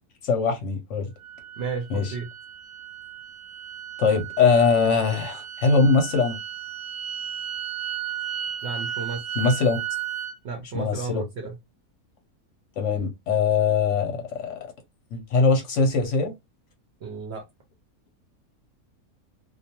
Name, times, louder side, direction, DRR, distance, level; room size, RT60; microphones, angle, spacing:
voice 1, 0.2-1.1 1.9-2.0 4.0-6.4 9.4-9.8 10.7-11.2 12.8-14.6 15.1-16.3, left 4 dB, 65° left, 0.8 m, -22 dB
sound 1, 1.2-10.4, right 10 dB, 90° right, 1.1 m, -34 dB
voice 2, 1.6-2.3 8.6-9.3 10.4-11.6 17.0-17.4, right 5 dB, 65° right, 0.6 m, -33 dB
2.3 x 2.2 x 2.8 m
omnidirectional pair, 1.5 m